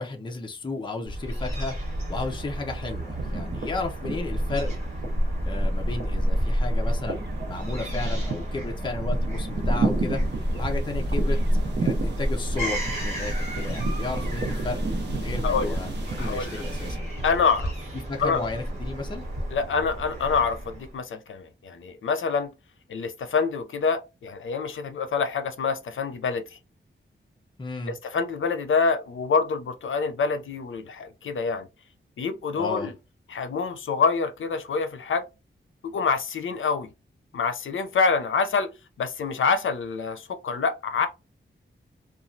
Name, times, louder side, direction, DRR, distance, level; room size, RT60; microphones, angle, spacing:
voice 1, 0.0-1.8 2.1-4.7 5.4-7.2 7.5-10.2 10.5-14.8 15.1-17.1 18.1-19.3 27.6-27.9 32.5-32.9, left 3 dB, 25° left, 0.5 m, -33 dB
Fowl / Gull seagull, 1.1-20.9, equal, 35° right, 1.4 m, -29 dB
sound 1, 1.8-2.4 2.7-17.0, right 4 dB, 60° right, 0.7 m, -34 dB
voice 2, 15.4-15.8 16.2-16.5 17.2-17.7 18.2-18.4 19.5-22.5 22.9-26.4 27.9-31.7 32.2-32.9 33.3-35.2 35.8-36.9 37.3-38.7 39.0-41.1, left 5 dB, 75° left, 0.5 m, -26 dB
3.1 x 2.3 x 2.6 m
wide cardioid pair, 170°, 21 cm